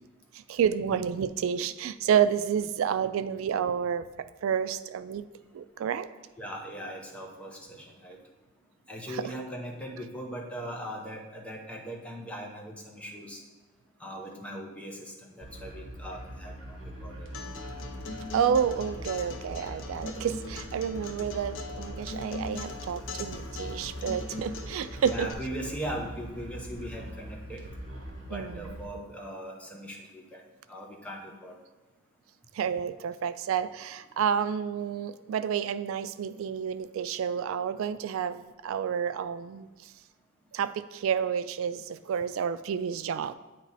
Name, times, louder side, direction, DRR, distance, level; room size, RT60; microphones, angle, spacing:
voice 1, 0.3-4.1 4.4-5.3 5.5-6.1 9.1-9.4 18.3-25.3 28.3-28.8 32.5-39.9 40.5-43.3, right 8 dB, 85° right, 14 dB, 0.3 m, -30 dB
voice 2, 6.4-8.2 8.9-13.4 14.0-17.3 25.0-27.7 28.3-30.4 30.7-31.5, equal, 5° left, -1 dB, 0.8 m, -39 dB
sound 1, 15.4-28.9, equal, 65° right, 1.2 m, -42 dB
Acoustic guitar, 17.3-25.3, left 3 dB, 65° left, 0.6 m, -41 dB
8.8 x 3.0 x 4.0 m, 1.2 s
head